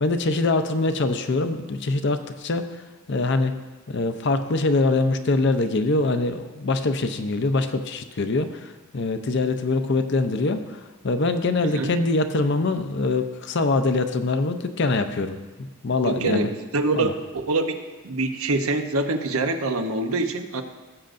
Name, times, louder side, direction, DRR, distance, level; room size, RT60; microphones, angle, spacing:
voice 1, 0.0-2.7 3.1-3.5 3.9-15.4 15.8-16.5 16.9-17.1, left 3 dB, 50° left, 9 dB, 0.6 m, -23 dB
voice 2, 16.0-16.5 16.7-17.8 18.0-20.6, right 2 dB, 70° right, 6 dB, 0.8 m, -25 dB
17.0 x 7.7 x 2.6 m, 1.2 s
head